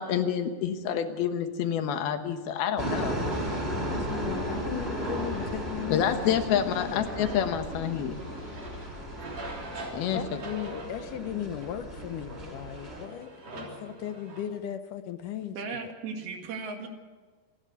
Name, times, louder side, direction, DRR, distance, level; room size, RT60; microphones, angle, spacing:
voice 1, 0.0-3.2 5.9-8.2 9.9-10.2, left 9 dB, 90° left, 8 dB, 3.3 m, -28 dB
sound 1, 2.8-13.1, equal, 15° right, 5.4 m, -35 dB
sound 2, 3.2-10.2, equal, 5° left, 3.2 m, -46 dB
voice 2, 3.9-7.0 10.1-15.6, left 10 dB, 75° left, 10 dB, 2.1 m, -37 dB
sound 3, 7.0-14.4, right 1 dB, 45° right, 4.4 m, -43 dB
voice 3, 15.6-16.9, right 4 dB, 80° right, 4 dB, 4.1 m, -36 dB
27.0 x 12.0 x 8.2 m, 1.3 s
omnidirectional pair, 4.3 m